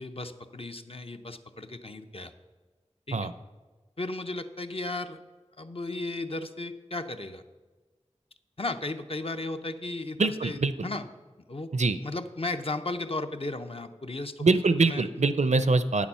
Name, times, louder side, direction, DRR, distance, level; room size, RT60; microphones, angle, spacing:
voice 1, 0.0-2.3 3.1-3.3 4.0-5.2 5.6-7.4 8.6-11.1 11.5-11.7 12.0-14.5 14.9-15.1, left 2 dB, 50° left, 7 dB, 0.7 m, -35 dB
voice 2, 10.2-10.7 11.7-12.0 14.4-16.1, right 3 dB, 75° right, 12 dB, 0.5 m, -23 dB
9.5 x 7.2 x 5.5 m, 1.3 s
wide cardioid pair, 45°, 12 cm